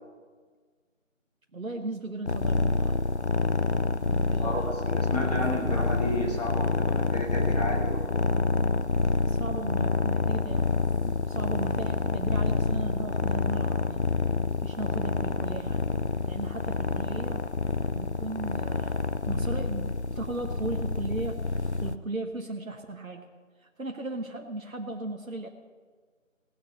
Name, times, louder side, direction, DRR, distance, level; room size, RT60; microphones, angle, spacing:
voice 1, 1.5-3.0 4.1-4.7 9.3-10.7 11.0-14.1 14.6-15.8 16.3-17.5 17.8-21.4 21.8-23.3 23.6-25.5, right 2 dB, 85° right, 3 dB, 1.2 m, -37 dB
sound 1, 2.3-22.0, left 3 dB, 55° left, 0.6 m, -27 dB
voice 2, 4.4-8.0, left 1 dB, 30° left, -5 dB, 3.0 m, -32 dB
17.5 x 6.5 x 7.9 m, 1.5 s
figure-of-eight pair, 175°, 40 cm